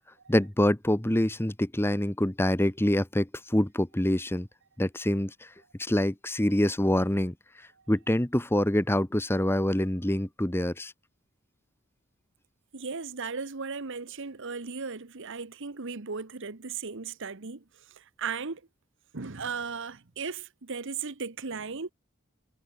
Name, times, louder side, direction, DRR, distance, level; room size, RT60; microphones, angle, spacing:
voice 1, 0.3-4.5 4.8-5.5 5.8-7.3 7.9-10.9, left 1 dB, 10° left, 1.1 m, -26 dB
voice 2, 12.7-18.6 19.1-21.9, right 5 dB, 60° right, 1.2 m, -36 dB
head